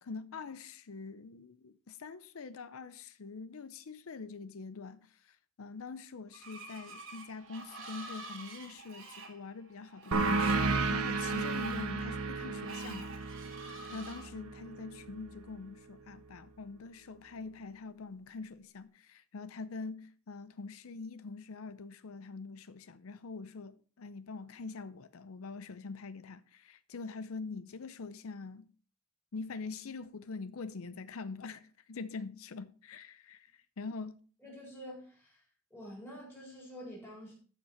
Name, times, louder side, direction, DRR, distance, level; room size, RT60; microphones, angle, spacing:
voice 1, 0.0-13.2 13.7-28.7 29.3-34.2, left 4 dB, 70° left, 0.6 m, -44 dB
Screech, 6.3-14.3, right 3 dB, 70° right, 2.0 m, -48 dB
sound 1, 10.1-15.3, right 3 dB, 90° right, 1.0 m, -33 dB
voice 2, 34.4-35.4 35.7-37.3, equal, 10° left, 4.1 m, -47 dB
12.5 x 5.8 x 4.3 m
head